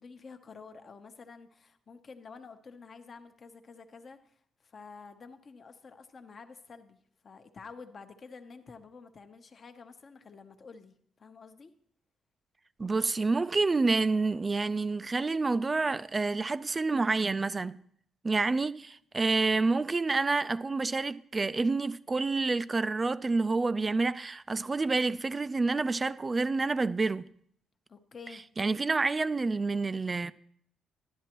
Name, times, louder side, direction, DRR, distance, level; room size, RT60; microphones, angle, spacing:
voice 1, 0.0-7.0 7.2-11.7 27.9-28.5, left 4 dB, 45° left, 0.8 m, -50 dB
voice 2, 12.8-17.7 18.2-27.2 28.6-30.3, right 3 dB, 25° right, 0.3 m, -28 dB
12.0 x 10.0 x 3.0 m
cardioid pair, 90°, 0 cm